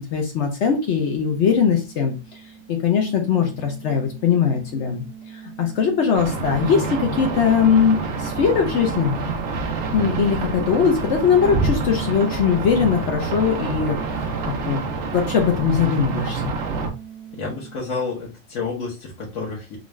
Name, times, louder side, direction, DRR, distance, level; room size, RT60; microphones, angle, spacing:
voice 1, 0.1-2.1 2.7-5.0 5.6-9.2 9.9-14.3 14.6-16.5, left 7 dB, 65° left, 3 dB, 0.9 m, -20 dB
sound 1, 1.0-18.5, right 8 dB, 45° left, 0.4 m, -41 dB
sound 2, 6.1-16.9, right 4 dB, 65° right, 1.0 m, -27 dB
voice 2, 17.3-19.8, left 4 dB, 85° left, -6 dB, 1.5 m, -30 dB
3.9 x 2.3 x 3.0 m, 0.30 s
omnidirectional pair, 1.4 m